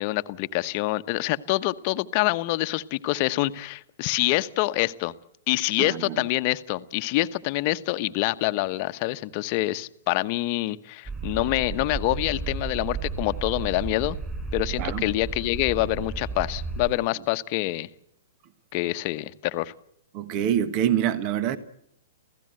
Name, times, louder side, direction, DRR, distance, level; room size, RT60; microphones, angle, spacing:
voice 1, 0.0-5.1 5.5-14.2 14.5-17.9 18.7-19.7, left 18 dB, 45° left, 11 dB, 1.1 m, -26 dB
voice 2, 5.8-6.2 11.3-11.4 14.8-15.1 20.1-21.6, right 10 dB, 40° right, 14 dB, 1.5 m, -26 dB
sound 1, 11.0-16.9, right 4 dB, 15° right, 7.0 m, -33 dB
28.0 x 16.0 x 7.9 m, 0.76 s
figure-of-eight pair, 110°, 0 cm